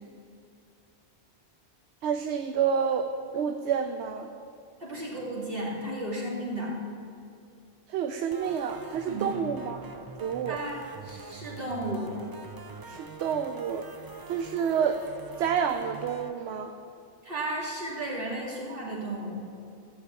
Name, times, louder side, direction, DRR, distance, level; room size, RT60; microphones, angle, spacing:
voice 1, 2.0-4.3 7.9-9.9 10.2-10.6 12.9-13.9 14.3-15.0 15.4-16.7, right 7 dB, 80° right, 6 dB, 0.9 m, -29 dB
voice 2, 4.8-6.7 9.0-9.3 10.5-10.8 11.0-12.1 17.2-19.4, right 1 dB, 55° right, -5 dB, 2.6 m, -34 dB
sound 1, 8.3-16.3, right 4 dB, 40° right, 0.3 m, -44 dB
14.5 x 5.0 x 8.2 m, 2.6 s
omnidirectional pair, 1.1 m